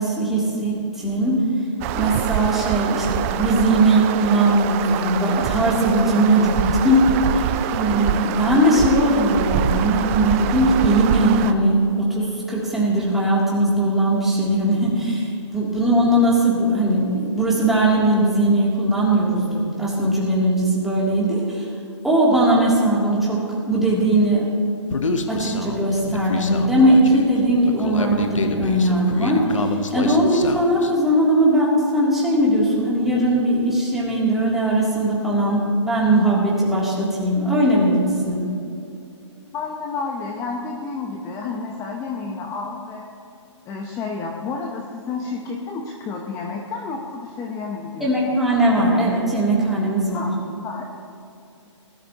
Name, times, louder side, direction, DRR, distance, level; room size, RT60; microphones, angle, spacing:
voice 1, 0.0-1.4 2.0-21.7 22.0-23.4 23.6-24.5 25.3-38.4 48.0-50.3, right 1 dB, ahead, -7 dB, 3.1 m, -19 dB
sound 1, 1.8-11.5, right 10 dB, 25° right, 0.5 m, -25 dB
Human voice, 24.9-30.9, left 3 dB, 85° left, 1.2 m, -28 dB
voice 2, 39.5-43.1 43.7-48.1 50.1-50.3 50.6-50.9, left 4 dB, 20° left, 1 dB, 1.0 m, -30 dB
19.5 x 13.0 x 3.1 m, 2.6 s
hypercardioid pair, 140°, 16 cm